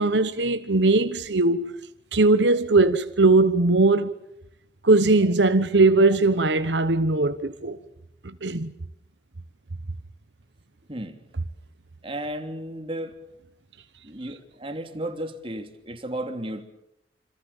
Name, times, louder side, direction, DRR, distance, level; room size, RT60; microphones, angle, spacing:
voice 1, 0.0-1.7 2.1-4.1 4.8-7.8 8.2-8.7, right 3 dB, 85° right, 1.1 m, -20 dB
voice 2, 10.9-11.2 12.0-13.2 14.0-16.6, right 1 dB, 30° right, 3.1 m, -34 dB
27.5 x 27.0 x 7.3 m
head